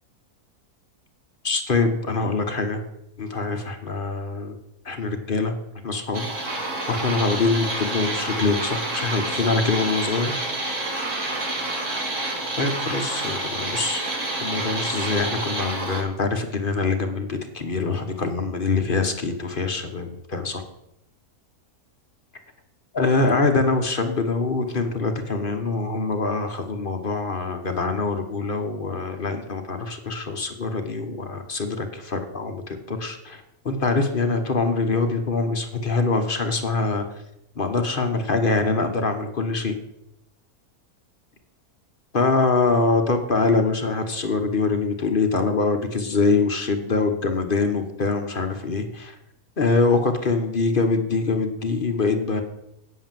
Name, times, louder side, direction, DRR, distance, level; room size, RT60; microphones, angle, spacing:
voice 1, 1.4-2.8 3.2-4.5 4.8-5.5 5.8-6.5 6.9-10.3 12.6-14.0 14.4-20.6 22.9-37.1 37.6-39.8 42.1-49.2 49.6-52.4, left 3 dB, 40° left, 6 dB, 1.1 m, -24 dB
sound 1, 6.1-16.0, right 2 dB, 55° right, 2.6 m, -28 dB
8.4 x 7.9 x 7.4 m, 0.84 s
omnidirectional pair, 1.6 m